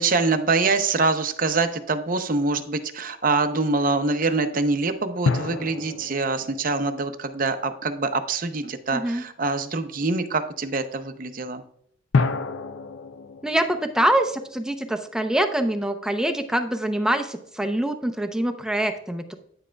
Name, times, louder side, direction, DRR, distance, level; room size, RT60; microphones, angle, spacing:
voice 1, 0.0-11.6, right 3 dB, 45° right, 9 dB, 0.7 m, -24 dB
sound 1, 0.9-1.6 5.3-8.1 12.1-15.4, left 4 dB, 70° left, 0.4 m, -30 dB
voice 2, 8.9-9.2 13.4-19.3, right 1 dB, 5° right, 6 dB, 0.6 m, -24 dB
9.6 x 7.4 x 2.3 m, 0.68 s
head